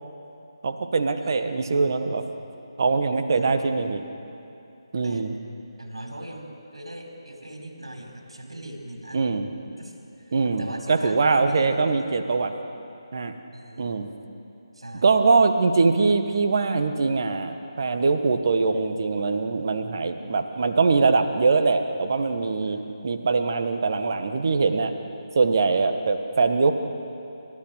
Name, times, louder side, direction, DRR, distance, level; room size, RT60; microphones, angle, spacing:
voice 1, 0.6-2.3 2.8-4.0 4.9-5.3 9.1-9.5 10.3-12.5 13.1-13.3 13.8-14.1 14.9-24.9 25.3-26.7, right 4 dB, 45° right, 7 dB, 1.5 m, -22 dB
voice 2, 3.3-3.7 5.0-5.3 5.8-9.3 9.8-12.1 13.5-14.0 14.7-15.1 22.7-22.8, right 1 dB, 70° right, 2 dB, 5.0 m, -41 dB
29.5 x 13.5 x 8.0 m, 2.8 s
figure-of-eight pair, 150°, 3 cm